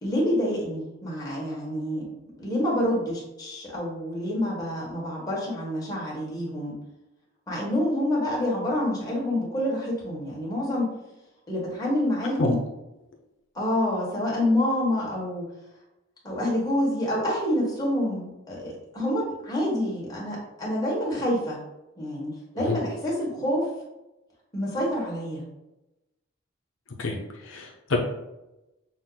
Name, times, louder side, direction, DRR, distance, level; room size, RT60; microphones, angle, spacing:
voice 1, 0.0-2.1 2.4-6.7 7.5-10.9 11.5-12.6 13.5-15.4 16.2-21.6 22.0-23.7 24.5-25.4, left 1 dB, 20° left, -5 dB, 1.4 m, -27 dB
voice 2, 27.5-28.0, left 3 dB, 75° left, 1 dB, 0.7 m, -26 dB
6.2 x 2.1 x 3.9 m, 0.95 s
head